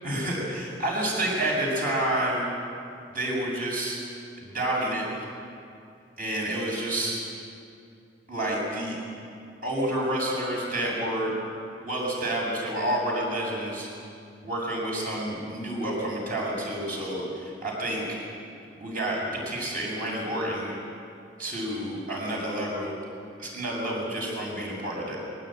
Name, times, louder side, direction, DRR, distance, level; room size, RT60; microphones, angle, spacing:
voice 1, 0.0-2.5 3.1-4.0 4.4-5.0 6.2-7.2 8.3-9.0 9.6-11.3 11.8-13.9 14.4-18.0 18.8-20.7 21.4-23.0 23.4-25.2, right 1 dB, 50° right, -2 dB, 7.4 m, -29 dB
21.5 x 18.0 x 9.2 m, 2.5 s
head